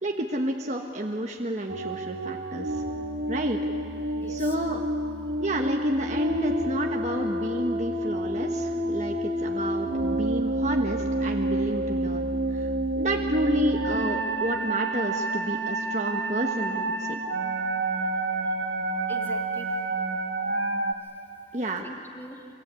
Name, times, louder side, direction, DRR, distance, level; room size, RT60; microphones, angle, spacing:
voice 1, 0.0-2.8 3.3-3.6 4.3-4.8 5.4-17.2 21.5-21.8, right 1 dB, 40° right, 1 dB, 1.4 m, -30 dB
sound 1, 1.7-20.9, right 2 dB, 85° right, 1.8 m, -29 dB
voice 2, 4.2-4.6 18.5-19.8 21.8-22.5, equal, 10° left, 2 dB, 2.0 m, -44 dB
27.0 x 24.5 x 8.5 m, 2.3 s
head